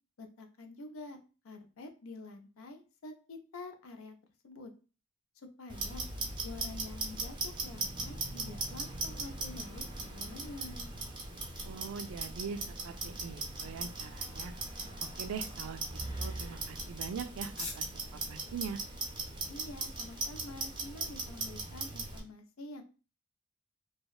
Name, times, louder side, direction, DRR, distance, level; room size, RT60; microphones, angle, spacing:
voice 1, 0.2-1.2 1.4-4.1 4.4-4.7 5.4-6.1 6.4-10.9 19.5-22.8, left 2 dB, 80° left, 6 dB, 0.5 m, -47 dB
Clock, 5.7-22.2, right 3 dB, 20° right, 0.5 m, -39 dB
voice 2, 11.6-14.5 15.2-17.9 18.1-18.8, right 6 dB, 75° right, 8 dB, 0.3 m, -42 dB
sound 1, 14.7-21.8, left 3 dB, 35° left, 0.9 m, -53 dB
2.7 x 2.0 x 2.3 m, 0.34 s
head